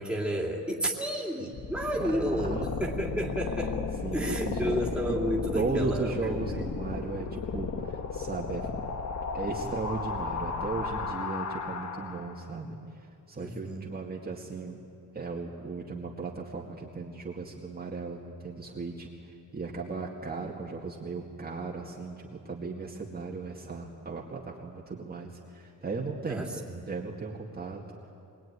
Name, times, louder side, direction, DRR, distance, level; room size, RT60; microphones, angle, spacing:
voice 1, 0.0-3.8 4.1-6.7 13.4-13.9 26.3-26.8, equal, 5° right, -2 dB, 3.0 m, -31 dB
sound 1, 1.5-12.5, left 5 dB, 45° left, 1.6 m, -34 dB
voice 2, 2.0-2.7 4.0-4.8 5.0-5.2 5.5-8.7 9.3-12.8 13.3-14.8 15.1-27.8, right 4 dB, 25° right, -3 dB, 2.2 m, -36 dB
25.0 x 22.0 x 9.8 m, 2.5 s
wide cardioid pair, 165°, 36 cm